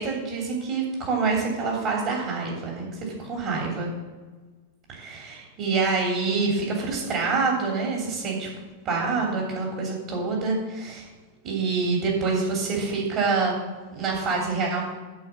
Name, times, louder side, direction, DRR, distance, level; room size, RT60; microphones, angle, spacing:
voice 1, 0.0-3.9 4.9-8.5 8.8-11.1 11.4-13.5 13.9-14.8, right 4 dB, 35° right, -1 dB, 3.0 m, -26 dB
11.5 x 4.9 x 8.2 m, 1.3 s
figure-of-eight pair, 90°, 0 cm